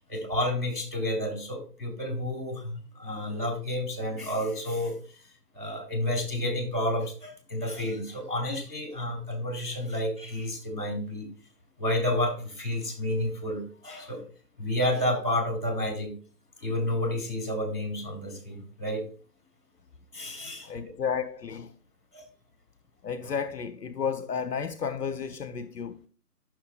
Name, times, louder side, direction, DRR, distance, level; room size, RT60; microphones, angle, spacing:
voice 1, 0.0-5.0 5.5-11.3 11.8-14.2 14.6-16.1 16.6-19.0 20.1-20.7 22.1-22.3, left 1 dB, 30° left, 2.5 m, -30 dB
voice 2, 20.6-21.7 23.0-26.1, left 6 dB, 70° left, 0.7 m, -32 dB
12.5 x 6.0 x 2.2 m
figure-of-eight pair, 175°, 49 cm